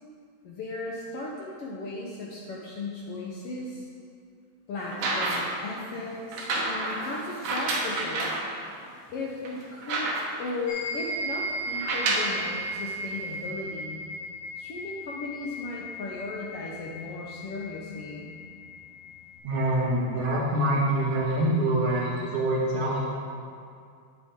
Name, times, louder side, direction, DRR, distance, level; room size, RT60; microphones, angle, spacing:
voice 1, 0.4-3.9 4.7-8.3 9.1-10.1 10.4-14.0 14.6-18.3, left 2 dB, 70° left, -3 dB, 1.5 m, -36 dB
sound 1, 4.8-5.6 6.3-8.5 9.0-9.1 9.4-10.5 11.7-12.4 13.3-13.4, right 2 dB, 60° right, 2.0 m, -29 dB
sound 2, 10.7-19.4, equal, 85° left, 4.2 m, -36 dB
voice 2, 19.4-23.0, right 1 dB, 80° right, -7 dB, 3.7 m, -25 dB
9.1 x 8.5 x 3.6 m, 2.3 s
omnidirectional pair, 3.5 m